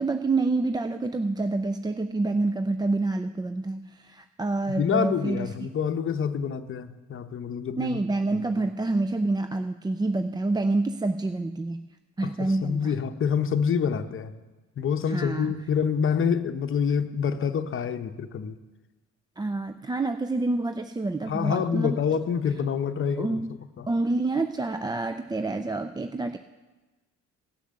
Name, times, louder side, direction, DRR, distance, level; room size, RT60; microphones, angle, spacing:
voice 1, 0.0-5.5 7.8-11.8 12.2-12.9 15.1-15.5 19.4-22.0 23.2-23.5 23.9-26.4, right 2 dB, 15° right, 9 dB, 0.4 m, -27 dB
voice 2, 4.7-8.0 8.3-8.4 12.2-14.3 14.8-18.6 21.2-23.4 23.8-23.9, left 7 dB, 45° left, 8 dB, 0.8 m, -27 dB
16.0 x 6.6 x 6.5 m, 1.2 s
cardioid pair, 90°, 30 cm